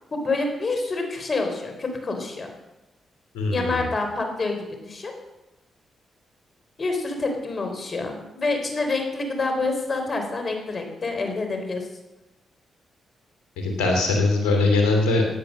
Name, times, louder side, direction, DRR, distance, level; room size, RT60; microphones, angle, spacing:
voice 1, 0.1-2.5 3.5-5.1 6.8-11.9, left 3 dB, 45° left, 4 dB, 3.9 m, -27 dB
voice 2, 3.3-3.9 13.6-15.3, left 3 dB, 85° left, 2 dB, 3.0 m, -21 dB
16.0 x 9.4 x 6.5 m, 1.0 s
supercardioid pair, 45°, 0 cm